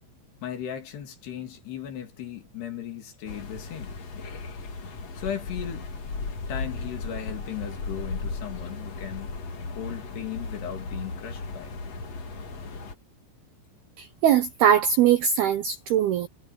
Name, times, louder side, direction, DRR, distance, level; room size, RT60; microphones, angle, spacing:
voice 1, 0.4-4.0 5.2-5.9 6.5-9.3 9.7-11.8, left 9 dB, 55° left, 4.7 m, -37 dB
sound 1, 3.2-12.9, left 3 dB, 40° left, 2.7 m, -36 dB
voice 2, 14.0-16.3, right 9 dB, 75° right, 2.3 m, -21 dB
omnidirectional pair, 5.8 m